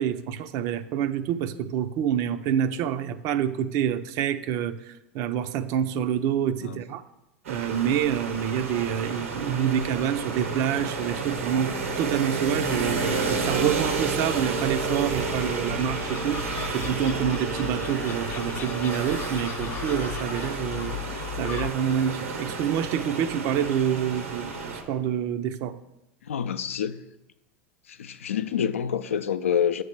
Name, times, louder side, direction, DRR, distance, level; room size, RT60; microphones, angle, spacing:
voice 1, 0.0-7.0 7.5-25.8, right 9 dB, 50° right, 0.5 m, -27 dB
sound 1, 7.4-24.8, right 4 dB, 80° right, 1.0 m, -31 dB
Gull seagull, 12.6-21.7, left 9 dB, 35° left, 0.6 m, -37 dB
voice 2, 26.3-27.0 27.9-29.8, left 8 dB, 85° left, 0.4 m, -27 dB
7.8 x 3.3 x 5.9 m
hypercardioid pair, 90°, 7 cm